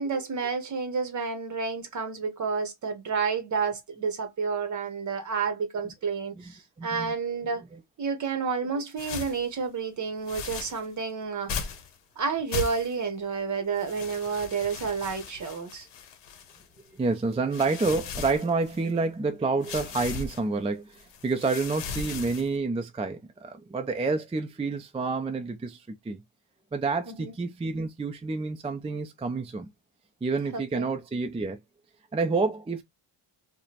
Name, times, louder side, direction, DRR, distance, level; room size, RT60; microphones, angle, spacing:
voice 1, 0.0-7.6 8.0-11.7 12.2-15.9 27.1-27.3 30.5-30.9, right 5 dB, 35° right, 0.9 m, -30 dB
voice 2, 6.3-7.1 7.7-7.8 16.9-26.2 26.7-29.7 30.2-31.6 32.1-32.8, right 3 dB, 15° right, 0.4 m, -29 dB
sound 1, 9.0-9.5 10.3-10.9 11.5-11.9 12.5-13.1 13.8-16.8 17.3-19.0 19.6-20.4 20.9-22.6, left 6 dB, 55° left, 0.9 m, -37 dB
4.8 x 2.2 x 2.8 m
cardioid pair, 155°, 50 cm